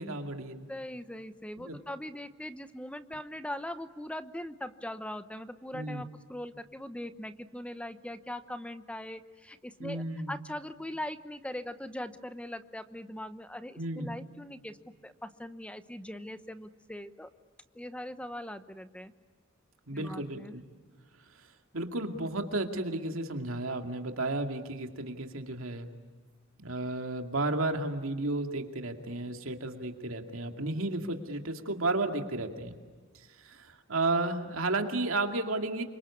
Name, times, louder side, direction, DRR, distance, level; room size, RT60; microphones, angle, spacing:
voice 1, 0.0-0.6 1.7-1.8 5.7-6.0 9.8-10.4 13.8-14.2 19.9-20.6 21.7-25.9 26.6-32.8 33.4-35.8, right 2 dB, 90° right, 5 dB, 2.4 m, -33 dB
voice 2, 0.7-14.8 15.0-17.3 17.7-19.1 19.9-20.5, left 1 dB, 5° left, 12 dB, 0.9 m, -41 dB
28.0 x 25.0 x 8.5 m, 1.5 s
head